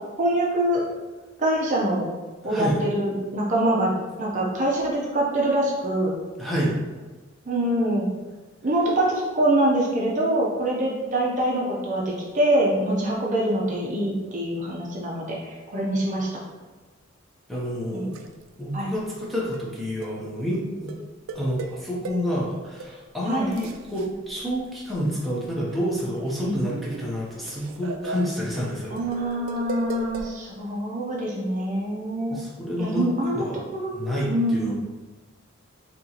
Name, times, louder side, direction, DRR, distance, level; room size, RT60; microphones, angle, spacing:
voice 1, 0.2-0.8 1.4-2.1 2.4-3.9 4.2-6.2 7.5-8.1 8.6-16.4 17.9-18.2 18.7-18.9 23.3-23.5 26.4-26.6 28.9-34.0 34.3-34.7, right 1 dB, 40° right, -2 dB, 0.7 m, -24 dB
voice 2, 2.4-2.8 6.4-6.7 17.5-18.2 18.6-20.9 21.3-29.0 32.3-33.0 33.3-33.6 33.9-34.7, equal, ahead, -6 dB, 0.7 m, -28 dB
sound 1, 18.1-18.4 19.0-19.1 19.5-19.7 20.0-20.2 20.9-22.4 22.8-22.9 23.4-25.3 25.6-30.3, right 3 dB, 75° right, 0.4 m, -37 dB
4.1 x 2.9 x 2.8 m, 1.3 s
head